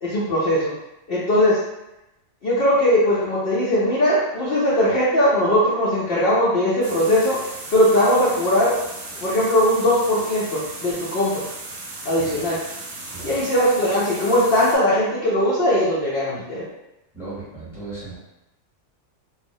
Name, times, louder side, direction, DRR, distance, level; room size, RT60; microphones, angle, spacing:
voice 1, 0.0-0.7 1.1-1.6 2.4-7.4 7.7-8.7 9.2-11.4 12.1-12.6 13.2-16.6, left 1 dB, 60° left, -8 dB, 0.6 m, -19 dB
sound 1, 6.8-14.8, right 2 dB, 65° right, 0.7 m, -36 dB
voice 2, 17.1-18.2, right 3 dB, ahead, -10 dB, 0.8 m, -36 dB
2.3 x 2.0 x 2.6 m, 0.93 s
omnidirectional pair, 1.4 m